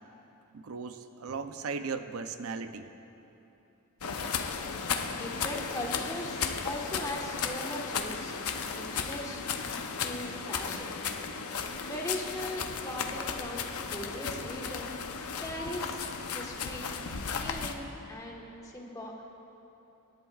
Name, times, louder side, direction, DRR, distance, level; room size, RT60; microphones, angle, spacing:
voice 1, 0.5-2.9, right 4 dB, 75° right, 9 dB, 0.5 m, -37 dB
sound 1, 4.0-17.7, left 6 dB, 85° left, 0.7 m, -35 dB
voice 2, 5.1-8.3 8.7-9.4 10.0-11.0 11.9-14.9 15.4-16.0 16.3-16.9 17.4-19.3, left 1 dB, 15° left, -1 dB, 1.3 m, -39 dB
25.0 x 11.0 x 2.4 m, 3.0 s
head